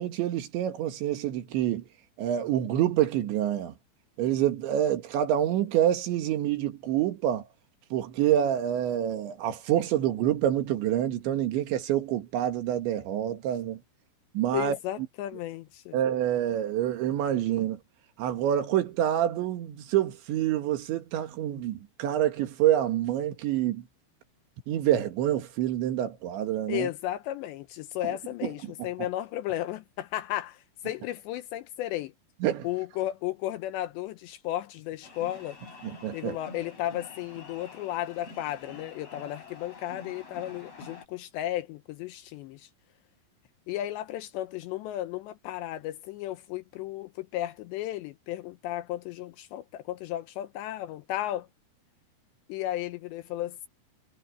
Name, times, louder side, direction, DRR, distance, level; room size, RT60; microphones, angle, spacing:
voice 1, 0.0-1.9 2.2-3.7 4.2-7.4 7.9-13.8 14.3-14.8 15.9-17.8 18.2-23.8 24.7-26.9 28.0-28.1 28.4-28.5 28.8-28.9 32.4-32.7 35.8-36.4, right 11 dB, 65° right, 3.9 m, -27 dB
voice 2, 14.5-16.0 26.7-32.1 32.6-35.6 36.1-42.7 43.7-51.5 52.5-53.7, left 14 dB, 80° left, 2.5 m, -34 dB
sound 1, 35.0-41.1, left 4 dB, 30° left, 8.9 m, -47 dB
omnidirectional pair, 6.0 m